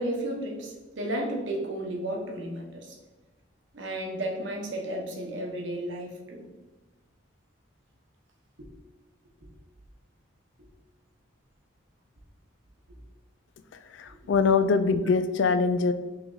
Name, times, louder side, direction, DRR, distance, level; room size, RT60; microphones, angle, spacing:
voice 1, 0.0-3.0 3.7-6.4 8.6-8.7, right 1 dB, 65° right, 0 dB, 0.9 m, -33 dB
voice 2, 13.9-15.9, left 4 dB, 65° left, 10 dB, 0.3 m, -23 dB
3.3 x 3.1 x 3.6 m, 1.2 s
head